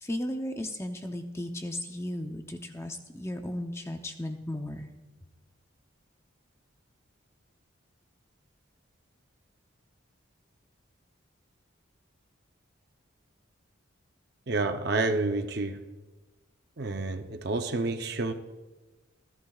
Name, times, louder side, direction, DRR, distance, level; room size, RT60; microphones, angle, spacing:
voice 1, 0.0-4.9, left 1 dB, 15° left, 5 dB, 0.7 m, -35 dB
voice 2, 14.5-15.8 16.8-18.3, right 3 dB, 50° right, 6 dB, 0.7 m, -29 dB
27.5 x 11.5 x 2.4 m, 1.2 s
head